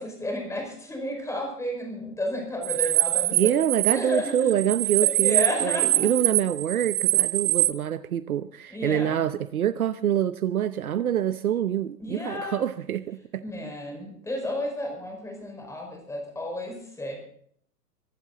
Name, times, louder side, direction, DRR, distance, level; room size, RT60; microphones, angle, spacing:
voice 1, 0.0-3.5 3.9-4.5 5.0-6.2 8.7-9.2 12.0-12.6 13.4-17.2, left 1 dB, 5° left, 2 dB, 5.2 m, -32 dB
sound 1, 2.6-7.7, right 15 dB, 35° right, 0.7 m, -24 dB
voice 2, 3.4-13.4, right 10 dB, 60° right, 14 dB, 0.9 m, -26 dB
23.5 x 12.0 x 4.1 m, 0.63 s
figure-of-eight pair, 115°, 48 cm